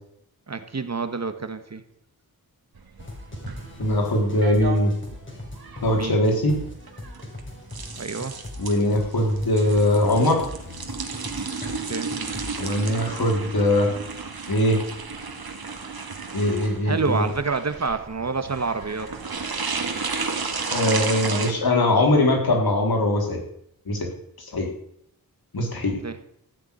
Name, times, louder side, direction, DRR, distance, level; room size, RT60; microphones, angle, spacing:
voice 1, 0.5-1.8 5.9-6.2 8.0-8.4 11.7-12.1 16.8-19.1 26.0-26.2, right 4 dB, 45° right, 10 dB, 1.4 m, -28 dB
Filling a bucket, 2.8-21.5, right 4 dB, 75° right, 2.1 m, -33 dB
sound 1, 3.0-12.8, left 1 dB, 30° left, 5.0 m, -40 dB
voice 2, 3.8-4.9 5.8-6.6 8.6-10.4 12.6-13.9 14.5-14.8 16.3-17.2 20.7-23.4 23.9-24.1 24.5-24.7 25.5-26.0, left 1 dB, 75° left, 0 dB, 4.0 m, -21 dB
15.0 x 7.0 x 10.0 m, 0.73 s
wide cardioid pair, 90°, 37 cm